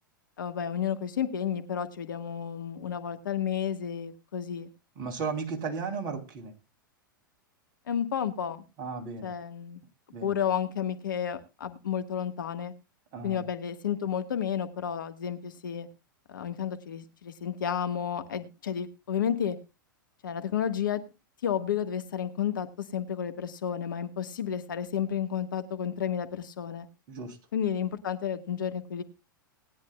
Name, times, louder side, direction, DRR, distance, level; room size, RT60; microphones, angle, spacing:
voice 1, 0.4-4.7 7.9-8.6 9.2-9.8 10.2-12.7 13.2-15.9 16.3-19.6 20.2-21.0 21.4-22.7 22.9-26.9 27.5-29.0, left 8 dB, 70° left, 9 dB, 1.5 m, -31 dB
voice 2, 4.9-6.5 8.8-9.3 10.1-10.4 13.1-13.4 27.1-27.4, right 5 dB, 40° right, 5 dB, 3.2 m, -35 dB
19.5 x 10.5 x 2.3 m, 0.28 s
figure-of-eight pair, 100°, 11 cm